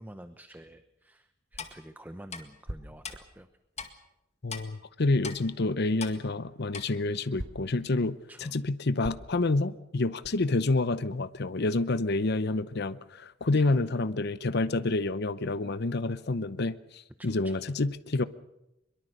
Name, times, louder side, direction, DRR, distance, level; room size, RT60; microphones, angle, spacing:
voice 1, 0.0-3.5 8.3-8.6 13.6-13.7 17.2-17.6, right 1 dB, 10° right, 9 dB, 0.9 m, -48 dB
sound 1, 1.2-4.9 5.2-11.0, equal, 85° right, 3.2 m, -46 dB
Clock, 1.6-1.7 2.3-2.4 3.0-3.2 3.8-3.9 4.5-4.6 5.2-5.4 6.0-6.2 6.7-6.8, left 6 dB, 35° left, 2.0 m, -38 dB
voice 2, 4.4-8.2 8.4-18.2, left 2 dB, 60° left, 14 dB, 0.8 m, -28 dB
22.5 x 22.5 x 6.7 m, 0.89 s
head